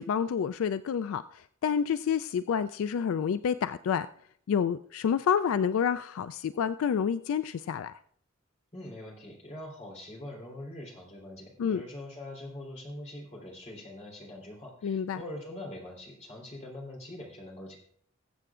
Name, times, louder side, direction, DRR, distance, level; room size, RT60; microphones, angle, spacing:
voice 1, 0.0-4.1 4.5-7.9 11.6-11.8 14.8-15.2, left 7 dB, 80° left, 13 dB, 0.3 m, -28 dB
voice 2, 8.7-17.8, left 1 dB, 35° left, -2 dB, 3.3 m, -43 dB
21.5 x 7.7 x 2.4 m, 0.63 s
head